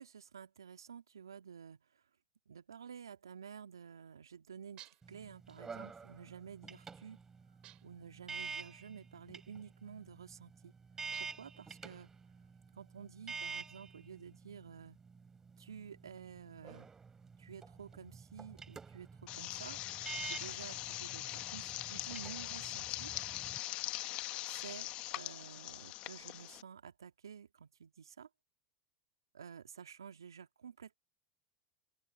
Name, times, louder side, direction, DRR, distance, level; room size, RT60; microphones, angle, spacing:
voice 1, 0.0-2.0 2.5-7.2 7.8-10.7 11.2-12.1 12.7-15.0 15.6-16.9 17.4-19.8 20.2-23.1 24.5-24.9 25.2-28.3 29.3-31.0, right 7 dB, 85° right, 2.5 m, -51 dB
sound 1, 4.8-5.2 7.6-8.1 11.1-11.6, right 15 dB, 45° right, 2.8 m, -57 dB
sound 2, 5.0-23.6, right 5 dB, 20° right, 4.4 m, -49 dB
sound 3, 19.3-26.6, left 18 dB, 50° left, 1.4 m, -42 dB
open air
hypercardioid pair, 85°, 2 cm